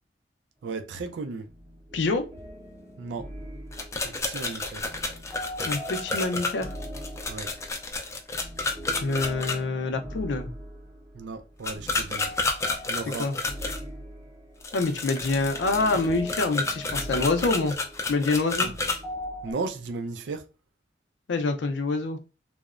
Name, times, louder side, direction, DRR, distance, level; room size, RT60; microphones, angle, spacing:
voice 1, 0.6-1.5 3.0-3.3 4.0-4.9 7.3-7.5 11.1-12.3 12.9-13.3 18.6-18.7 19.4-20.5, right 4 dB, 75° right, 0.4 m, -35 dB
sound 1, 1.5-19.5, equal, 20° right, 0.7 m, -41 dB
voice 2, 1.9-2.3 5.6-6.7 9.0-10.5 13.2-13.3 14.7-17.8 18.1-18.7 21.3-22.2, left 3 dB, 80° left, 0.4 m, -26 dB
sound 2, 3.7-9.6 11.6-13.8 14.6-19.0, left 3 dB, 15° left, 0.3 m, -30 dB
2.9 x 2.0 x 2.3 m
head